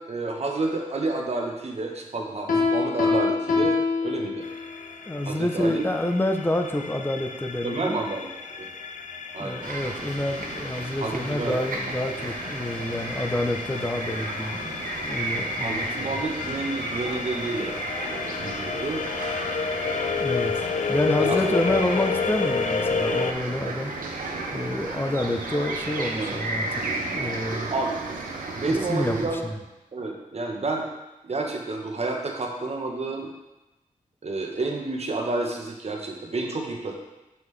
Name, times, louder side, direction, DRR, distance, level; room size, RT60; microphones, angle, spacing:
voice 1, 0.0-4.4 5.3-5.8 7.6-8.3 8.6-8.7 9.3-9.6 11.0-11.8 15.6-19.0 21.2-21.4 26.2-26.4 27.7-28.0 28.5-29.4 29.9-30.9 31.2-33.3 34.2-37.0, right 3 dB, 50° right, 1 dB, 0.9 m, -30 dB
Piano, 2.5-4.8, left 4 dB, 90° left, 1.0 m, -24 dB
sound 1, 4.4-23.3, left 5 dB, 60° left, 0.4 m, -31 dB
voice 2, 5.1-8.0 9.4-16.1 20.2-23.9 24.5-27.7 28.9-29.6, left 1 dB, 15° left, 5 dB, 0.6 m, -28 dB
sound 2, 9.6-29.3, right 3 dB, 75° right, 0.9 m, -34 dB
6.0 x 5.4 x 3.2 m, 1.0 s
wide cardioid pair, 70°, 14 cm